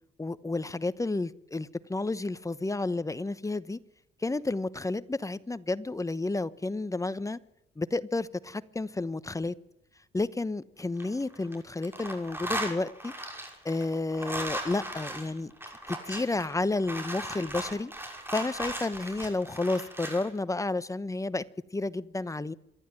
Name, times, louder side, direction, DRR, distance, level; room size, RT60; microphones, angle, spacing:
voice 1, 0.2-3.8 4.2-7.4 7.8-9.5 10.1-13.1 13.6-15.5 15.9-17.9 18.3-21.4 21.7-22.5, left 2 dB, 15° left, 1.0 m, -31 dB
sound 1, 10.8-11.6 11.8-20.3, right 1 dB, 10° right, 5.9 m, -37 dB
27.0 x 12.0 x 9.1 m
cardioid pair, 90°, 20 cm